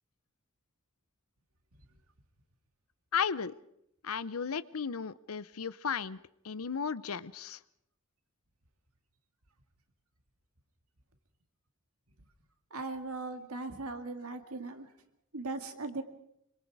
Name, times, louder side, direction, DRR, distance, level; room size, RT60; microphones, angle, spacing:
voice 1, 3.1-3.5 4.0-6.2 6.4-7.6, left 6 dB, 85° left, 17 dB, 0.7 m, -34 dB
voice 2, 12.7-14.9 15.3-16.0, right 3 dB, 90° right, 7 dB, 2.1 m, -38 dB
26.0 x 24.5 x 4.8 m, 0.77 s
head